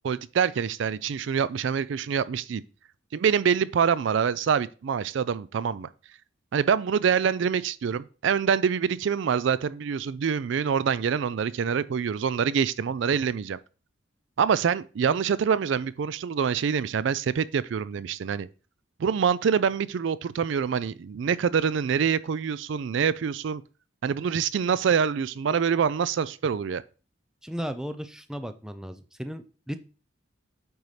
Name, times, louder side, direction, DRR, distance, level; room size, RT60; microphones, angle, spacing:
voice 1, 0.0-2.6 3.1-5.9 6.5-13.6 14.4-18.5 19.0-23.6 24.0-26.8, right 7 dB, 65° right, 0.3 m, -25 dB
voice 2, 27.4-29.8, equal, 5° right, 0.4 m, -35 dB
8.9 x 5.4 x 3.2 m
head